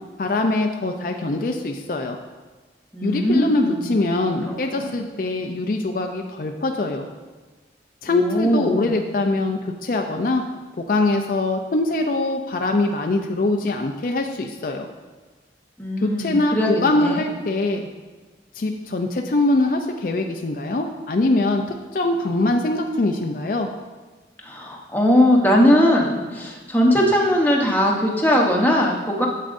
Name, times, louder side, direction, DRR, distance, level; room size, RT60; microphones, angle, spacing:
voice 1, 0.2-2.2 3.0-7.1 8.0-10.4 10.9-14.9 16.0-17.9 18.5-23.7, left 2 dB, 50° left, 3 dB, 0.4 m, -23 dB
voice 2, 2.9-3.7 4.5-4.8 8.1-8.9 15.8-17.2 24.4-29.3, equal, 10° left, -1 dB, 0.9 m, -19 dB
8.7 x 7.4 x 2.6 m, 1.3 s
head